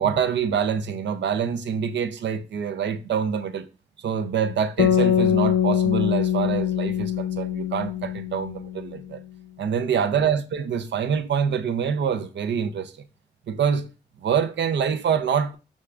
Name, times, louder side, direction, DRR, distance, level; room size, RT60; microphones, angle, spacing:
voice 1, 0.0-3.7 4.0-9.2 9.6-12.9 13.5-13.9 14.2-15.6, right 7 dB, 75° right, 0.5 m, -25 dB
sound 1, 4.8-9.0, left 10 dB, 75° left, 0.6 m, -23 dB
6.3 x 2.4 x 3.3 m
supercardioid pair, 40°, 19 cm